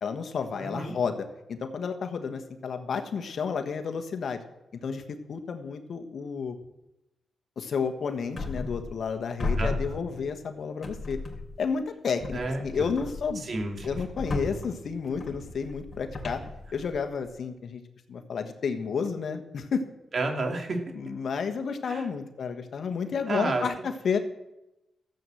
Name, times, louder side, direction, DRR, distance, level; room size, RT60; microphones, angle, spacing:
voice 1, 0.0-4.4 4.7-6.6 7.6-11.2 11.6-13.5 13.8-16.4 16.7-17.8 18.1-19.8 20.9-24.2, left 6 dB, 65° left, 7 dB, 1.4 m, -31 dB
voice 2, 0.6-0.9 9.6-10.0 12.3-12.9 13.4-13.9 20.1-20.8 21.8-22.1 23.3-23.6, right 2 dB, 55° right, 3 dB, 2.7 m, -31 dB
sound 1, 8.3-9.1 9.4-10.5 10.8-11.7 12.2-17.3, left 3 dB, 30° left, 3.1 m, -35 dB
13.5 x 7.9 x 7.7 m, 0.93 s
cardioid pair, 65°, 0 cm